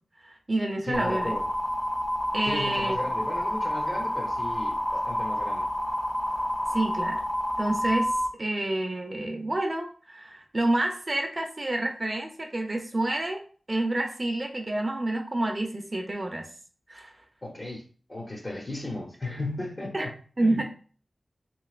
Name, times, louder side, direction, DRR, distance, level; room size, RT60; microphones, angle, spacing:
voice 1, 0.2-1.3 2.3-3.0 6.7-7.2 7.6-8.1 8.4-13.4 13.7-16.5 16.9-17.2 19.9-20.1 20.4-20.6, right 1 dB, 40° right, 3 dB, 0.5 m, -28 dB
voice 2, 0.8-1.5 2.4-5.7 17.4-17.8 18.1-20.1 20.4-20.6, left 2 dB, 40° left, -1 dB, 0.8 m, -35 dB
sound 1, 0.9-8.3, equal, 5° left, 0.6 m, -29 dB
3.0 x 2.8 x 2.4 m, 0.41 s
cardioid pair, 55°, 0 cm